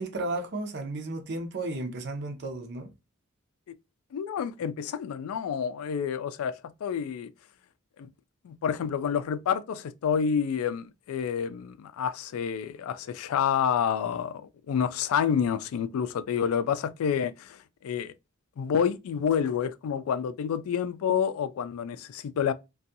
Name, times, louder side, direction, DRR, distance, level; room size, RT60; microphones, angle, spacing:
voice 1, 0.0-2.9, right 2 dB, 55° right, 0.6 m, -33 dB
voice 2, 4.1-6.5 6.8-7.3 8.0-8.1 8.4-18.1 18.6-22.5, left 7 dB, 85° left, 0.3 m, -28 dB
2.5 x 2.3 x 2.6 m
head